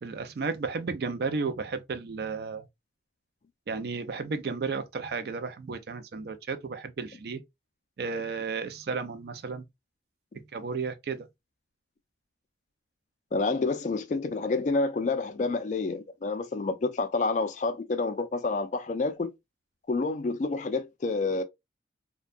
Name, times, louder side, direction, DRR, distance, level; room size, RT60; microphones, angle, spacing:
voice 1, 0.0-2.6 3.7-7.4 8.0-9.6 10.5-11.3, right 4 dB, 60° right, 0.4 m, -33 dB
voice 2, 13.3-19.3 19.9-21.4, left 3 dB, 40° left, 0.3 m, -28 dB
2.6 x 2.2 x 2.3 m
head